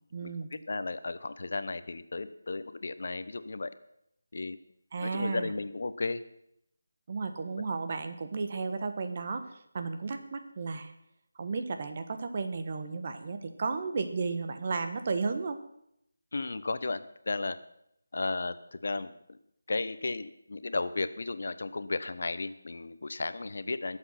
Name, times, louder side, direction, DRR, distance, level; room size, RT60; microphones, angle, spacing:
voice 1, 0.1-0.5 4.9-5.5 7.1-10.9 11.4-15.6, right 4 dB, 35° right, 8 dB, 1.4 m, -33 dB
voice 2, 0.7-3.7 4.3-4.6 5.0-6.2 7.5-7.6 16.3-17.6 18.1-19.1 19.7-24.0, left 3 dB, 55° left, 12 dB, 1.0 m, -34 dB
21.5 x 7.8 x 5.9 m, 0.75 s
figure-of-eight pair, 170°, 0 cm